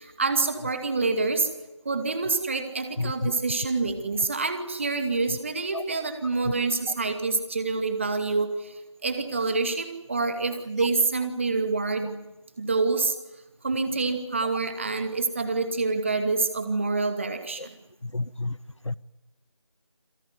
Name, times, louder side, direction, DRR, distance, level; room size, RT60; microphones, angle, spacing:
voice 1, 0.0-1.5 1.8-12.2 12.6-13.2 13.6-17.7, right 3 dB, 25° right, 2.4 m, -27 dB
voice 2, 18.1-18.5 18.9-19.0, left 2 dB, 70° left, 0.9 m, -29 dB
26.5 x 18.0 x 9.5 m
figure-of-eight pair, 170°, 16 cm